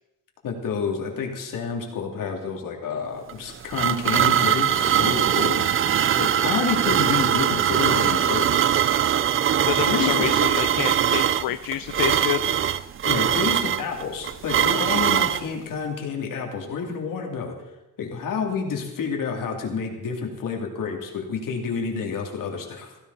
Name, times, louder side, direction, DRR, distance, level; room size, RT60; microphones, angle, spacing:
voice 1, 0.4-8.7 9.8-10.3 10.6-10.7 13.0-17.6 18.0-23.0, left 5 dB, 70° left, 1 dB, 3.1 m, -29 dB
sound 1, 3.3-15.4, right 9 dB, 40° right, 0.5 m, -21 dB
voice 2, 9.7-12.5, left 14 dB, 85° left, 12 dB, 0.6 m, -28 dB
16.0 x 15.5 x 4.2 m, 0.96 s
cardioid pair, 140°, 34 cm